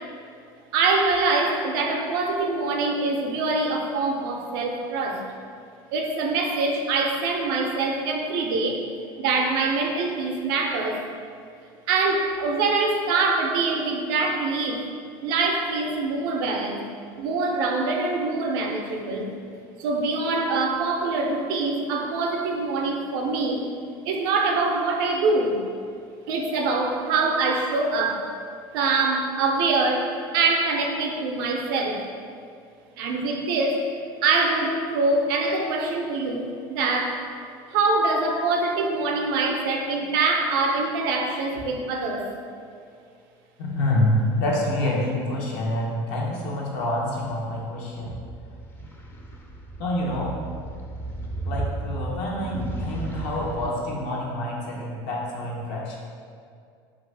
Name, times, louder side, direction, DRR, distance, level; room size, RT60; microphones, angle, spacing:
voice 1, 0.7-5.2 5.9-8.8 9.2-11.1 11.9-14.8 15.2-16.8 17.2-19.3 19.8-23.6 24.0-25.6 26.3-28.3 28.7-32.0 33.0-33.9 34.2-37.2 37.7-42.3, right 3 dB, 80° right, 1 dB, 0.4 m, -24 dB
voice 2, 43.6-48.1 49.8-50.4 51.4-56.0, left 1 dB, 70° left, -3 dB, 0.7 m, -27 dB
sound 1, 47.2-53.7, right 2 dB, 15° left, 0.4 m, -34 dB
2.5 x 2.3 x 3.2 m, 2.2 s
supercardioid pair, 90°, 12 cm